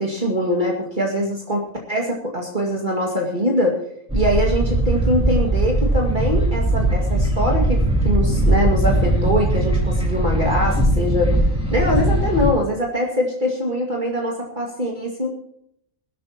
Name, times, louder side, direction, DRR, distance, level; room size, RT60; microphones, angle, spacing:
voice 1, 0.0-3.8 4.1-11.4 11.7-15.3, equal, 40° right, -1 dB, 2.3 m, -23 dB
sound 1, 4.1-12.5, right 1 dB, 5° right, 4.6 m, -19 dB
21.0 x 13.0 x 2.9 m, 0.70 s
omnidirectional pair, 1.3 m